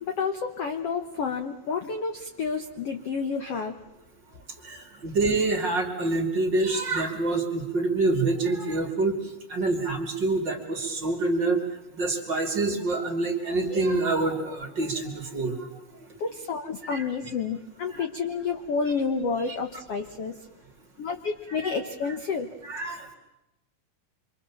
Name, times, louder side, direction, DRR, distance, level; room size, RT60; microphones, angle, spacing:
voice 1, 0.1-3.7 16.2-20.4 21.0-22.5, left 5 dB, 65° left, 6 dB, 1.5 m, -30 dB
voice 2, 4.6-9.2 9.5-11.6 12.0-15.6 16.9-17.0 17.9-18.0 21.6-21.8 22.6-23.1, right 2 dB, 35° right, 3 dB, 2.6 m, -26 dB
27.0 x 25.0 x 7.2 m, 0.93 s
omnidirectional pair, 4.4 m